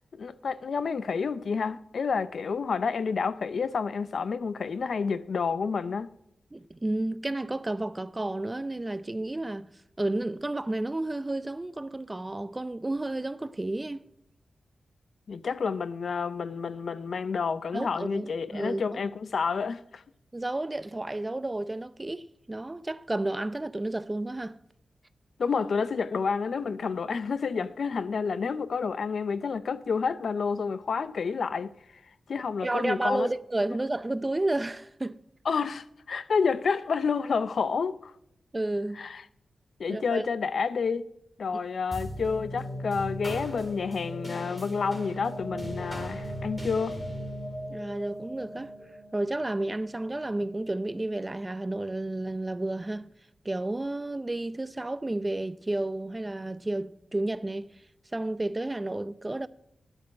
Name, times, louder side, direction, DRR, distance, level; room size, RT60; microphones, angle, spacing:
voice 1, 0.1-6.1 15.3-20.0 25.4-31.7 32.3-33.3 35.5-38.1 39.0-39.2 39.8-41.1 41.4-47.0, left 5 dB, 65° left, 0.5 m, -29 dB
voice 2, 6.5-9.7 10.0-14.1 17.7-19.0 20.3-24.6 32.6-35.2 38.5-39.0 39.9-40.2 47.7-48.7 49.1-53.1 53.4-57.7 58.1-59.5, right 2 dB, 20° right, 0.5 m, -31 dB
sound 1, 41.9-50.6, equal, 10° left, 2.5 m, -38 dB
9.9 x 8.4 x 5.2 m
wide cardioid pair, 110°, 0 cm